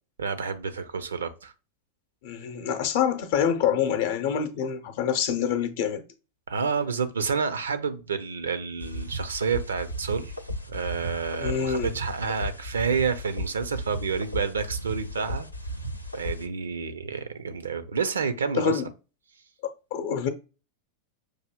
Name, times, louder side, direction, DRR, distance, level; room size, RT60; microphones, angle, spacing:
voice 1, 0.2-1.5 6.5-10.3 10.7-15.5 16.1-18.8, right 5 dB, 70° right, 0.5 m, -29 dB
voice 2, 2.2-6.0 11.4-11.9 18.5-18.9 19.9-20.3, left 8 dB, 50° left, 0.7 m, -26 dB
sound 1, 8.8-16.5, equal, 90° left, 0.3 m, -35 dB
6.2 x 2.7 x 2.2 m
figure-of-eight pair, 90°, 0 cm